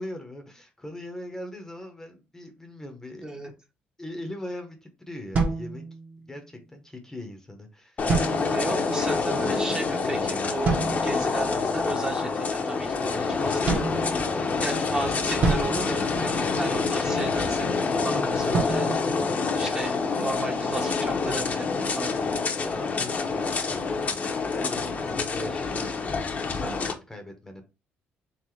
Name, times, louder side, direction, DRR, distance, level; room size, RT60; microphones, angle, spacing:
voice 1, 0.0-3.3 4.0-5.8 6.3-10.5 13.5-16.8 22.5-27.6, left 1 dB, 10° left, 0.9 m, -41 dB
sound 1, 5.3-6.4 8.1-8.9 10.6-11.3 13.7-14.7 15.4-16.9 18.5-20.0, right 4 dB, 40° right, 1.4 m, -29 dB
sound 2, 8.0-26.9, left 4 dB, 40° left, 0.9 m, -27 dB
voice 2, 8.5-10.7 11.0-13.6 14.6-18.9 19.6-22.3, right 2 dB, 20° right, 1.1 m, -34 dB
3.9 x 3.7 x 3.2 m
cardioid pair, 115°, 4 cm